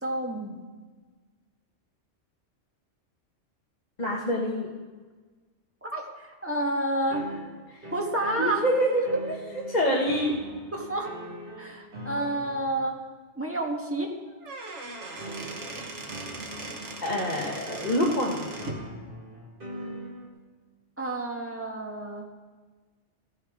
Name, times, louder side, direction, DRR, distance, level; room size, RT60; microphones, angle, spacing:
voice 1, 0.0-0.6 5.8-7.3 7.9-8.6 10.7-11.1 11.6-13.0 13.4-14.1 21.0-22.3, right 1 dB, 10° right, 0 dB, 1.5 m, -30 dB
voice 2, 4.0-4.7 7.7-7.8 8.4-9.0 9.7-10.3 15.1-15.2 17.0-18.4, equal, 35° left, -3 dB, 1.5 m, -26 dB
sound 1, 7.1-12.7 15.2-20.3, right 1 dB, 45° right, 2.1 m, -42 dB
Squeak / Wood, 14.3-18.9, right 2 dB, 75° right, 1.6 m, -39 dB
16.0 x 9.8 x 3.6 m, 1.4 s
omnidirectional pair, 1.2 m